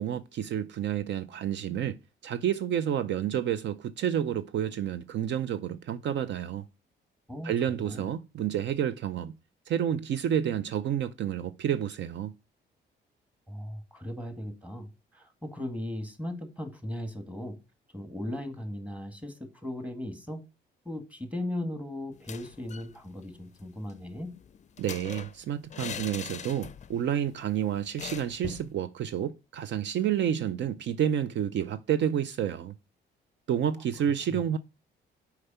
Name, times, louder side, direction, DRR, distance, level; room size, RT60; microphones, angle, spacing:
voice 1, 0.0-6.7 7.4-9.3 9.7-12.3 24.8-32.7 33.5-34.6, right 9 dB, 65° right, 0.5 m, -29 dB
voice 2, 13.5-17.6 17.9-20.4 20.9-24.3 34.3-34.4, left 1 dB, 5° right, 1.9 m, -37 dB
sound 1, 22.1-22.9 23.2-23.3 23.6-27.1 27.3-27.5 28.0-28.7, left 8 dB, 35° left, 0.4 m, -42 dB
6.6 x 4.9 x 5.6 m
cardioid pair, 90°, 20 cm